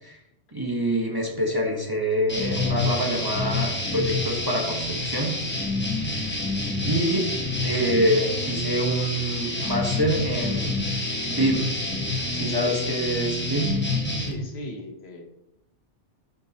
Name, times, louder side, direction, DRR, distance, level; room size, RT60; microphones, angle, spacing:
voice 1, 0.5-5.3 6.1-6.5 6.8-7.4 7.6-10.9 11.3-11.8 12.3-13.7, equal, 20° right, -1 dB, 1.0 m, -26 dB
sound 1, 2.3-14.3, left 2 dB, 10° left, 1.1 m, -28 dB
voice 2, 14.1-15.2, left 2 dB, 65° left, 4 dB, 1.2 m, -38 dB
7.5 x 6.3 x 2.9 m, 0.79 s
omnidirectional pair, 1.2 m